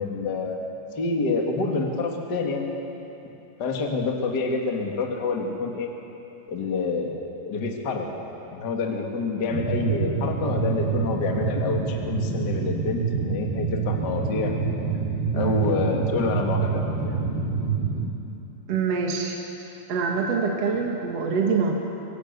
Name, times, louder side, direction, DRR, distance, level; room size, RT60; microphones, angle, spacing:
voice 1, 0.0-2.7 3.6-5.9 6.5-7.1 7.4-8.1 8.5-14.5 15.3-17.1, left 4 dB, 45° left, 1 dB, 1.4 m, -27 dB
sound 1, 9.5-18.1, right 5 dB, 70° right, 3.7 m, -27 dB
voice 2, 18.7-19.4 19.9-21.8, right 5 dB, 50° right, 0 dB, 2.0 m, -25 dB
25.0 x 16.5 x 8.2 m, 2.9 s
omnidirectional pair, 5.1 m